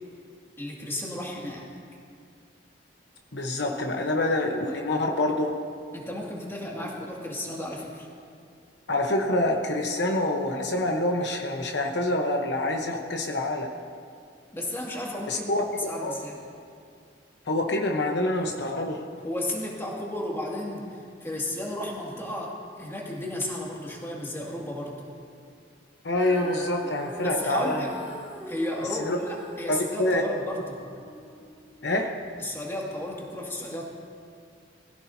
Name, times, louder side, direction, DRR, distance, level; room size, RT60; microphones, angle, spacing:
voice 1, 0.6-1.7 5.9-8.1 14.5-16.4 19.2-25.0 27.2-27.9 28.5-30.8 32.4-33.9, left 1 dB, 15° left, -3 dB, 2.3 m, -33 dB
voice 2, 3.3-5.6 6.8-6.9 8.9-13.7 15.3-15.6 16.0-16.1 17.5-19.0 26.0-27.9 29.0-29.2 29.7-30.2 31.8-32.2, left 1 dB, 70° left, 2 dB, 1.1 m, -26 dB
Female singing, 26.1-32.4 33.1-33.2, right 1 dB, 10° right, 2.5 m, -43 dB
21.5 x 15.5 x 2.8 m, 2.3 s
head